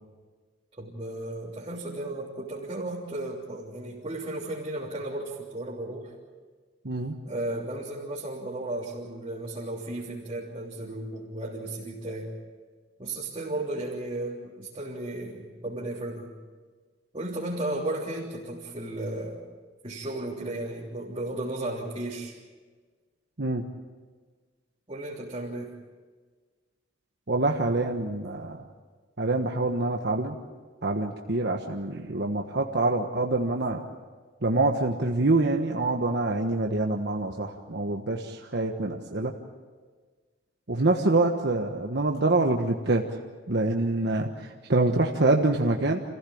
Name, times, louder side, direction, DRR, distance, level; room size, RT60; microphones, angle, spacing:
voice 1, 0.8-6.1 7.2-12.3 13.0-16.3 17.1-19.4 19.8-22.3 24.9-25.8, right 1 dB, 30° right, -6 dB, 3.3 m, -34 dB
voice 2, 27.3-28.6 29.2-30.4 30.8-33.8 34.4-39.3 40.7-43.2 43.5-46.0, right 2 dB, 60° right, 2 dB, 1.4 m, -25 dB
29.0 x 15.5 x 8.7 m, 1.5 s
head